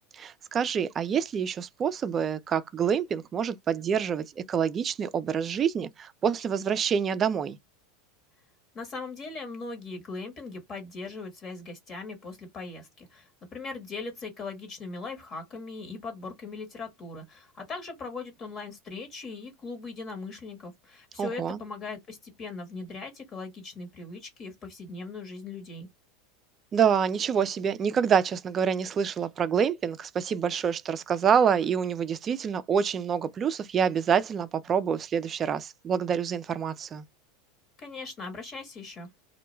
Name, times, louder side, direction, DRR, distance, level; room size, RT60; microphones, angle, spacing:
voice 1, 0.1-7.6 21.2-21.6 26.7-37.0, right 7 dB, 30° right, 0.3 m, -27 dB
voice 2, 8.7-25.9 37.8-39.1, left 3 dB, 35° left, 1.1 m, -39 dB
2.2 x 2.1 x 3.0 m
hypercardioid pair, 90°, 0 cm